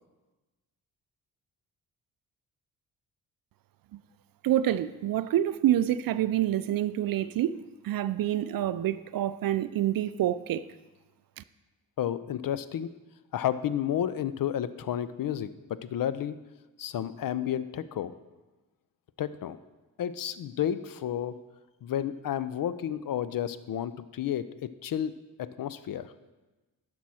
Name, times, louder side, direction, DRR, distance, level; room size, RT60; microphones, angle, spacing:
voice 1, 4.4-10.7 11.4-11.5, right 12 dB, 50° right, 0.5 m, -27 dB
voice 2, 12.0-12.9 13.3-16.4 16.8-18.1 19.2-19.6 20.0-21.4 21.8-26.1, left 10 dB, 45° left, 0.6 m, -31 dB
11.5 x 6.2 x 4.3 m
hypercardioid pair, 45°, 48 cm